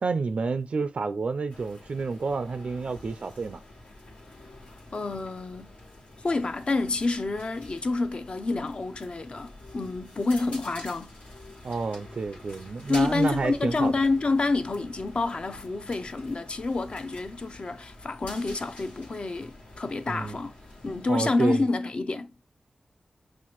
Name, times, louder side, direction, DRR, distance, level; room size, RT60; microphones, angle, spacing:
voice 1, 0.0-3.6 11.6-13.9 20.1-20.4 21.1-21.6, right 4 dB, 60° right, 0.3 m, -29 dB
sound 1, 1.5-21.1, left 1 dB, 80° left, 1.6 m, -47 dB
voice 2, 4.9-5.8 6.2-11.2 12.9-20.5 20.8-22.3, left 3 dB, 50° left, 0.5 m, -28 dB
5.7 x 2.5 x 2.9 m
wide cardioid pair, 80°, 2 cm